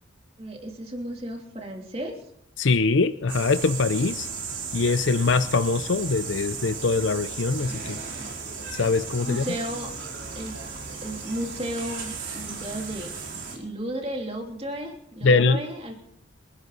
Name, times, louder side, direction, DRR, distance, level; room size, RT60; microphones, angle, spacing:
voice 1, 0.4-2.2 9.2-9.9 10.3-10.6 11.0-13.1 13.5-15.9, right 1 dB, 30° right, 1 dB, 3.1 m, -33 dB
voice 2, 2.6-4.3 4.7-8.0 8.7-9.4 15.2-15.6, left 4 dB, 70° left, 11 dB, 0.6 m, -23 dB
sound 1, 3.3-13.6, right 5 dB, 70° right, 4.8 m, -35 dB
28.5 x 11.5 x 4.1 m, 0.72 s
head